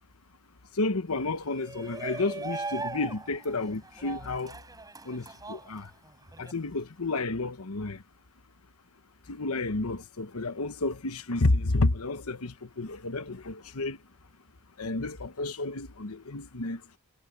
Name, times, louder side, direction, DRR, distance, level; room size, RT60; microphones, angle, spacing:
voice 1, 0.8-4.5 5.1-5.9 6.4-8.0 9.3-14.0 14.8-16.8, left 2 dB, 85° left, 1.2 m, -31 dB
Shout, 1.4-6.5, right 3 dB, 15° right, 5.7 m, -39 dB
head